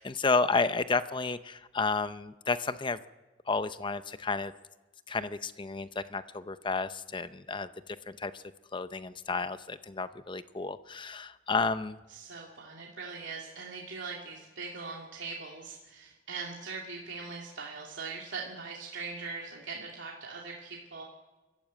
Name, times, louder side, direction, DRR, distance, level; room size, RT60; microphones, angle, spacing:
voice 1, 0.0-3.0 3.5-4.5 5.1-8.4 8.7-12.0, left 4 dB, 25° left, 13 dB, 0.7 m, -31 dB
voice 2, 12.1-21.0, right 4 dB, 75° right, -2 dB, 2.5 m, -41 dB
23.5 x 14.0 x 8.4 m, 1.2 s
head